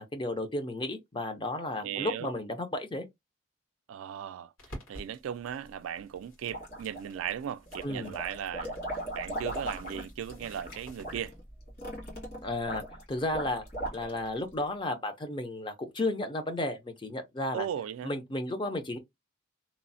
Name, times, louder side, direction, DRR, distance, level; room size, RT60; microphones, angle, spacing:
voice 1, 0.0-3.1 7.8-8.1 12.4-12.8 13.1-13.6 13.9-17.7 18.0-19.0, left 2 dB, 25° left, 0.5 m, -33 dB
voice 2, 1.8-2.3 3.9-11.3 17.5-18.1, right 9 dB, 85° right, 0.3 m, -37 dB
sound 1, 4.6-11.3, equal, 85° left, 1.7 m, -52 dB
sound 2, 6.5-7.3 7.7-14.4, right 1 dB, 50° left, 1.7 m, -38 dB
3.0 x 2.0 x 2.6 m
head